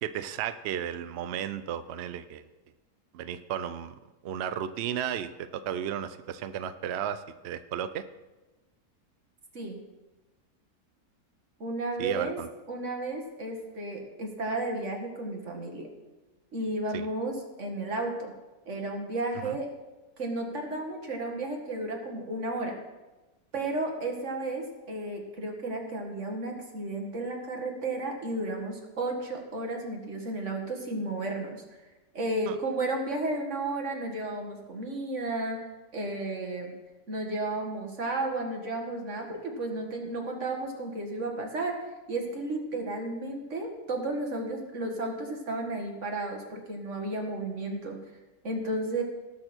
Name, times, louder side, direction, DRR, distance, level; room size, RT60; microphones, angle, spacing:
voice 1, 0.0-2.4 3.1-3.9 4.2-8.0 12.0-12.5 16.9-17.1 19.4-19.6 32.5-32.6, right 9 dB, 70° right, 12 dB, 0.6 m, -34 dB
voice 2, 11.6-12.4 12.7-15.9 16.5-18.3 18.7-19.7 20.2-22.8 23.5-31.6 32.1-35.6 35.9-36.7 37.1-41.8 42.1-48.0 48.4-49.0, right 2 dB, 50° right, 2 dB, 2.1 m, -33 dB
18.5 x 6.4 x 4.4 m, 1.1 s
omnidirectional pair, 1.6 m